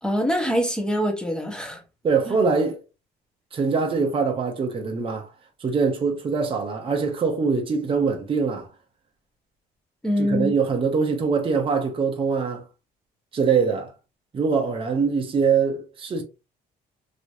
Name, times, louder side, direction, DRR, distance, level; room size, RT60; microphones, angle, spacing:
voice 1, 0.0-1.8 2.3-2.4 10.0-10.5, equal, 5° left, 1.0 m, -24 dB
voice 2, 2.0-2.8 3.5-5.3 5.6-8.7 10.2-12.6 13.3-13.9 14.3-16.2, right 5 dB, 30° right, 0.9 m, -23 dB
3.1 x 2.9 x 2.7 m
cardioid pair, 110°, 17 cm